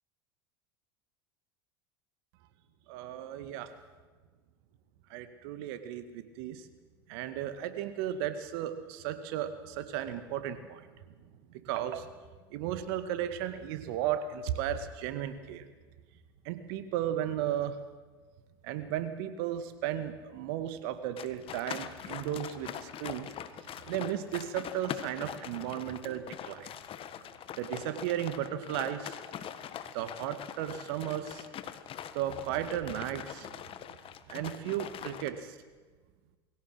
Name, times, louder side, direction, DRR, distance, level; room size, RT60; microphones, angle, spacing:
voice 1, 2.9-3.7 5.1-6.7 7.1-10.8 11.5-12.1 12.5-15.7 16.4-17.8 18.6-23.3 23.9-26.7 27.6-29.2 29.9-31.5 32.1-33.5 34.3-35.6, right 11 dB, 65° right, 10 dB, 2.1 m, -35 dB
sound 1, 21.2-35.3, left 9 dB, 40° left, 1.5 m, -43 dB
22.0 x 16.5 x 8.0 m, 1.4 s
hypercardioid pair, 85°, 13 cm